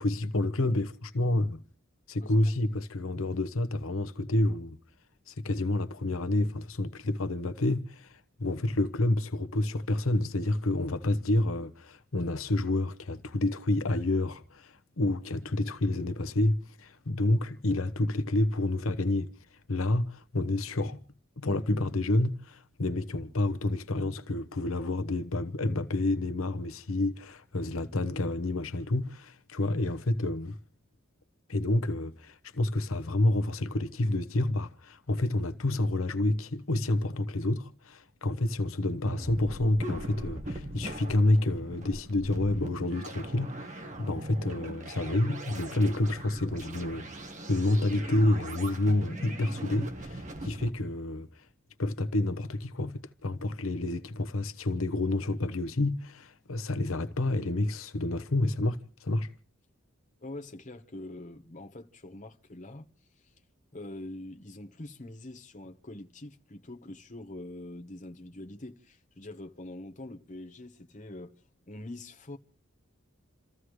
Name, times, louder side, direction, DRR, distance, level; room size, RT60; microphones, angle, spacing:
voice 1, 0.0-1.6 2.1-4.8 5.3-19.3 19.7-21.0 21.4-30.6 31.5-47.1 47.5-51.5 51.8-59.3, left 2 dB, 80° left, 1.0 m, -29 dB
voice 2, 2.2-2.5 60.2-62.9 63.7-71.3 71.7-72.4, left 1 dB, 35° left, 1.1 m, -44 dB
sound 1, 39.1-50.7, right 1 dB, 35° right, 1.4 m, -40 dB
29.0 x 14.5 x 3.2 m
head